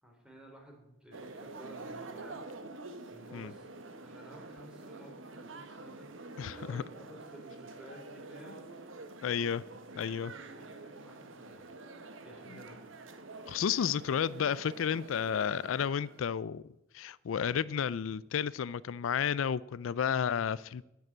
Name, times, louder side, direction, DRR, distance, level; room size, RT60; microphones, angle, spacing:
voice 1, 0.0-2.5 3.1-3.7 4.0-8.6 10.3-12.9, right 1 dB, 5° right, 1 dB, 3.7 m, -53 dB
sound 1, 1.1-16.3, right 3 dB, 75° right, 1.3 m, -47 dB
voice 2, 6.4-6.8 9.2-9.6 9.9-10.3 13.5-16.6 16.9-20.8, left 7 dB, 85° left, 20 dB, 0.4 m, -32 dB
10.5 x 9.3 x 9.9 m, 0.92 s
head